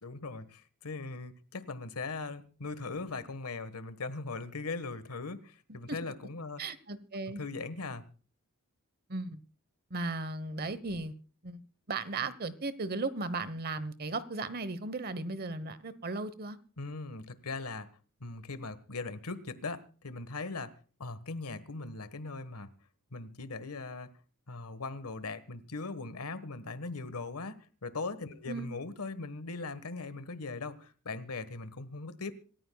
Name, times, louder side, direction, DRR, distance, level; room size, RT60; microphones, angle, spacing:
voice 1, 0.0-6.6 7.2-8.0 16.8-17.9 18.2-20.7 21.0-22.7 23.1-24.1 24.5-32.3, left 3 dB, 80° left, 13 dB, 1.4 m, -40 dB
voice 2, 6.6-7.4 9.1-9.4 9.9-11.1 11.4-11.6 11.9-16.6 28.5-28.7, right 3 dB, 45° right, 15 dB, 1.1 m, -36 dB
26.5 x 14.5 x 2.3 m, 0.39 s
head